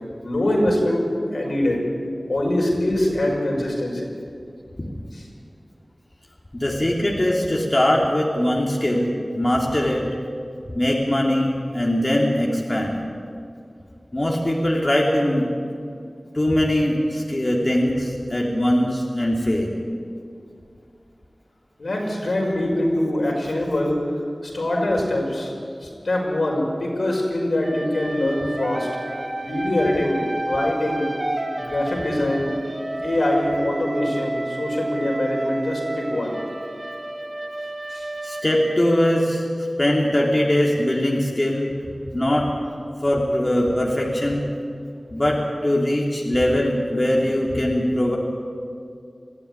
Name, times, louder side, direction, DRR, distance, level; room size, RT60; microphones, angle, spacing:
voice 1, 0.2-1.8 2.3-4.1 5.1-5.3 21.8-25.5 25.8-28.9 29.4-31.1 31.6-32.5 33.0-36.3 37.9-38.1, left 1 dB, 75° left, -1 dB, 5.7 m, -23 dB
voice 2, 6.5-10.1 10.7-13.0 14.1-15.5 16.3-19.7 38.2-39.5 39.8-41.7 42.1-42.5 43.0-44.5 45.1-48.2, left 1 dB, 30° left, -2 dB, 3.0 m, -21 dB
sound 1, 27.6-39.4, right 1 dB, 40° right, 1.7 m, -31 dB
21.5 x 14.0 x 9.8 m, 2.4 s
wide cardioid pair, 55°, 0 cm